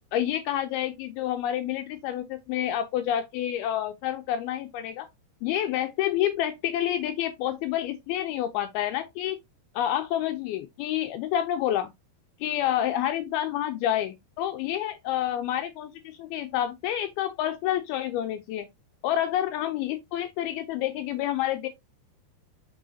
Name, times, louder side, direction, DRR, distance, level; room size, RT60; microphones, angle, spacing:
voice 1, 0.1-5.1 5.4-9.4 9.8-11.9 12.4-18.7 19.0-21.7, left 11 dB, 90° left, 2.2 m, -28 dB
6.2 x 5.6 x 2.7 m
omnidirectional pair, 5.0 m